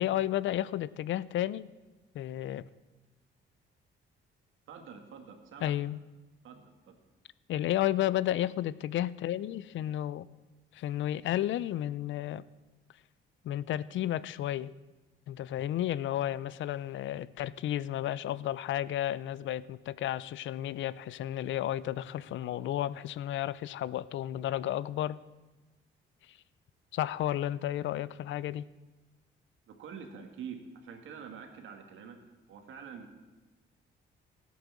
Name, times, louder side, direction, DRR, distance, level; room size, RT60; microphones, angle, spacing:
voice 1, 0.0-1.7 2.1-2.6 5.6-6.0 7.5-10.3 10.7-12.4 13.4-14.7 15.3-25.2 26.9-28.6, left 12 dB, 70° left, 0.5 m, -32 dB
voice 2, 4.7-5.8 6.4-7.0 29.7-32.2 32.5-33.2, right 6 dB, 75° right, 2.1 m, -46 dB
14.0 x 8.7 x 7.2 m
cardioid pair, 90°, 20 cm